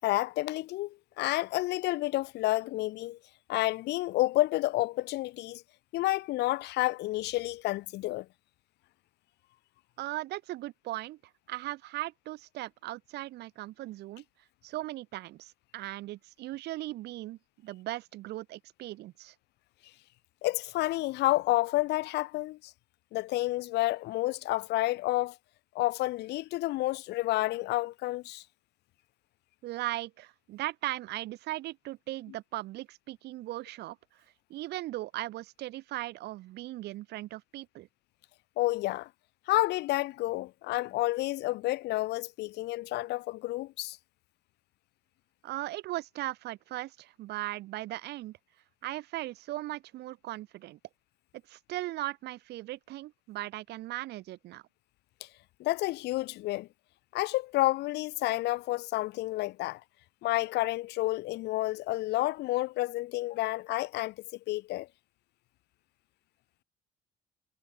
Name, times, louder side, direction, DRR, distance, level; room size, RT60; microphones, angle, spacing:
voice 1, 0.0-3.2 3.5-5.6 5.9-8.3 20.4-22.7 23.1-25.4 25.7-28.4 38.6-39.1 39.5-44.0 55.6-56.7 57.1-59.8 60.2-64.1 64.5-64.9, left 18 dB, 85° left, 4.5 m, -30 dB
voice 2, 10.0-11.2 11.5-14.2 14.6-19.3 29.6-34.0 34.5-37.9 45.4-48.4 48.8-50.8 51.5-54.6, right 16 dB, 80° right, 5.7 m, -38 dB
cardioid pair, 110°, 17 cm